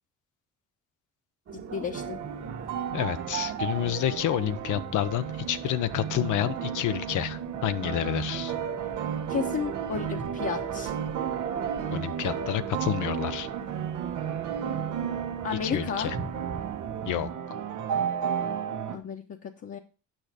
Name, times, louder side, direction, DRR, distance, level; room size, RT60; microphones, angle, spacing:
sound 1, 1.5-17.3, right 5 dB, 60° right, 1.7 m, -43 dB
voice 1, 1.7-2.2 9.3-10.9 15.4-16.1 18.9-19.8, left 6 dB, 50° left, 1 dB, 1.1 m, -33 dB
sound 2, 1.9-19.0, right 8 dB, 85° right, 1.2 m, -33 dB
voice 2, 2.9-8.5 11.9-13.5 15.5-16.2 17.1-17.3, left 12 dB, 80° left, 13 dB, 0.9 m, -29 dB
9.0 x 6.0 x 5.0 m, 0.34 s
cardioid pair, 90°, 30 cm